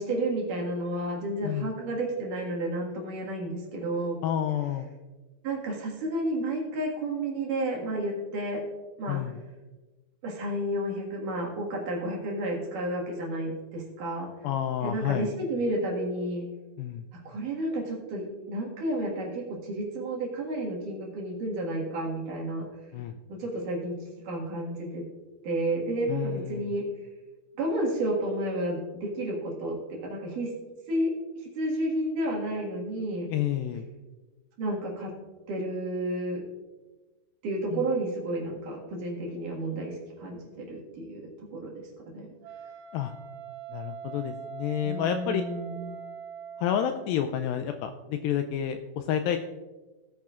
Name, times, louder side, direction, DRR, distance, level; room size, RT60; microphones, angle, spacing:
voice 1, 0.0-4.2 5.4-8.6 9.0-9.2 10.2-14.3 14.8-16.5 17.1-22.7 23.3-24.0 24.2-25.0 25.4-26.9 27.6-30.5 30.9-33.3 34.6-35.1 35.5-36.4 37.4-41.9 42.1-42.3 44.8-45.9, right 1 dB, 60° right, -1 dB, 3.1 m, -31 dB
voice 2, 4.2-4.9 9.1-9.4 14.4-15.3 16.8-17.0 22.9-23.2 26.1-26.7 33.3-33.9 37.7-37.8 42.9-43.1 43.7-45.4 46.6-49.4, left 10 dB, 85° left, 7 dB, 2.1 m, -29 dB
Wind instrument woodwind instrument, 42.4-47.1, right 7 dB, 75° right, 2.1 m, -42 dB
17.5 x 8.9 x 2.5 m, 1.2 s
omnidirectional pair, 4.5 m